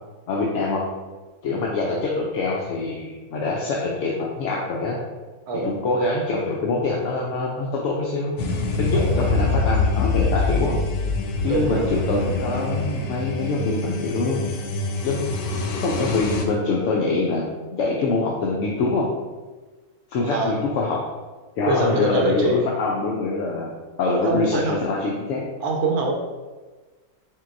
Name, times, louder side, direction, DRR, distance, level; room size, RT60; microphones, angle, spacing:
voice 1, 0.3-0.9 1.4-5.0 5.6-8.3 8.8-10.8 11.4-14.4 15.0-15.3 15.6-19.1 20.1-21.0 21.6-23.7 24.0-25.4, left 3 dB, 65° left, -2 dB, 0.8 m, -24 dB
voice 2, 5.5-5.8 8.9-9.2 11.5-11.9 20.2-20.6 21.7-22.7 24.1-24.7 25.6-26.1, right 2 dB, 80° right, 1 dB, 1.2 m, -24 dB
sound 1, 8.4-16.5, left 3 dB, 85° left, 1.1 m, -25 dB
4.5 x 3.7 x 2.5 m, 1.3 s
omnidirectional pair, 1.6 m